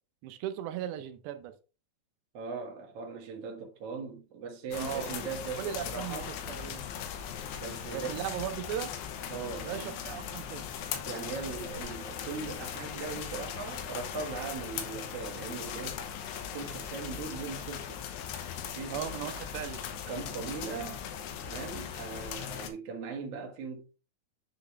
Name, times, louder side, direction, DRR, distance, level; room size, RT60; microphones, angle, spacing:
voice 1, 0.2-1.5 4.7-5.2 5.6-6.8 7.9-8.9 9.7-10.6 18.9-19.8, right 10 dB, 90° right, 2.9 m, -37 dB
voice 2, 2.3-6.3 7.6-8.1 9.3-10.3 11.1-16.1 16.5-18.0 18.6-19.1 20.1-21.0 21.4-23.9, right 5 dB, 55° right, 1.9 m, -39 dB
sound 1, 4.7-22.7, left 8 dB, 80° left, 3.0 m, -39 dB
10.0 x 4.0 x 3.3 m
omnidirectional pair, 4.8 m